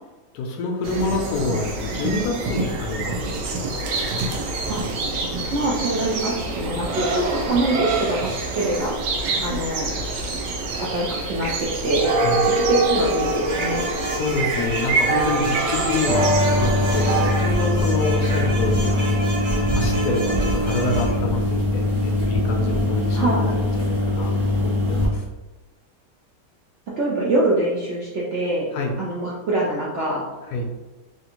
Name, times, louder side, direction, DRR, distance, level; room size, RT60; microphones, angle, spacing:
voice 1, 0.3-3.5 12.2-12.4 14.1-25.3 28.7-28.9 30.4-30.7, left 3 dB, 75° left, 1 dB, 1.0 m, -27 dB
sound 1, 0.8-17.3, right 2 dB, 85° right, 1.3 m, -25 dB
voice 2, 5.5-9.0 9.4-9.9 10.8-12.1 12.4-13.8 23.1-23.5 27.0-28.7 29.0-30.2, right 2 dB, 65° right, -6 dB, 0.7 m, -24 dB
sound 2, 13.2-21.2, right 2 dB, 30° right, 0.7 m, -31 dB
sound 3, 16.1-25.1, left 2 dB, 30° left, 0.7 m, -22 dB
3.3 x 2.5 x 2.9 m, 1.1 s
omnidirectional pair, 1.8 m